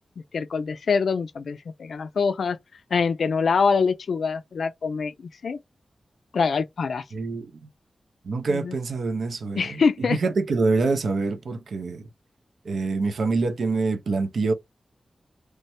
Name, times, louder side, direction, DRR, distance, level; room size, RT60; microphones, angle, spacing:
voice 1, 0.3-2.6 2.9-5.1 5.4-5.6 6.3-7.0 8.5-8.8 9.6-10.2, left 5 dB, 80° left, 0.3 m, -24 dB
voice 2, 7.1-7.5 8.3-9.8 10.1-12.0 12.7-14.5, right 3 dB, 80° right, 0.5 m, -25 dB
3.1 x 2.1 x 2.8 m
cardioid pair, 55°, 0 cm